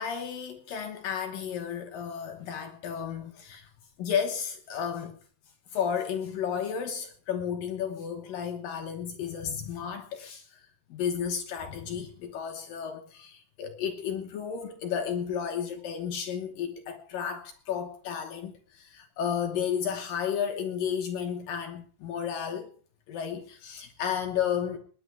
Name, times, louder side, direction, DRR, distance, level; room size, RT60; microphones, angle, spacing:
voice 1, 0.0-3.7 4.0-5.2 5.7-10.6 10.9-22.7 23.1-24.8, left 8 dB, 65° left, 2.3 m, -33 dB
19.0 x 10.5 x 4.7 m
omnidirectional pair, 5.2 m